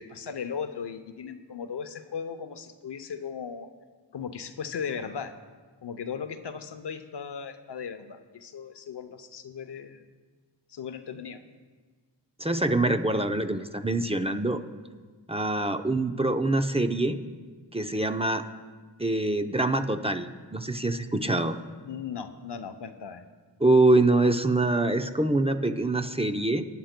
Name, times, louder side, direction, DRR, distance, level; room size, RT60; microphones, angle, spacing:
voice 1, 0.0-3.7 4.1-5.3 5.8-10.0 10.7-11.4 21.8-23.3, left 6 dB, 70° left, 10 dB, 0.7 m, -37 dB
voice 2, 12.4-14.6 15.3-17.2 17.7-18.4 19.0-21.6 23.6-26.6, right 2 dB, 15° right, 7 dB, 0.6 m, -25 dB
19.5 x 10.0 x 2.2 m, 1.4 s
cardioid pair, 55°, 43 cm